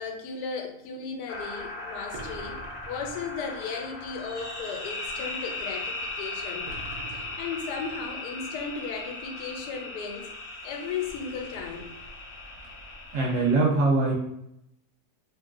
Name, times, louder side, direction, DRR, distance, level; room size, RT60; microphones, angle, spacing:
voice 1, 0.0-2.6 2.9-6.7 7.1-10.3 10.6-11.9, left 5 dB, 85° left, 2 dB, 1.2 m, -35 dB
sound 1, 1.3-13.5, left 2 dB, 60° left, 0.6 m, -38 dB
sound 2, 2.1-3.6 6.7-8.2, right 3 dB, 85° right, 1.1 m, -44 dB
voice 2, 13.1-14.1, right 3 dB, 65° right, -2 dB, 0.8 m, -22 dB
3.1 x 2.6 x 2.4 m, 0.78 s
omnidirectional pair, 1.7 m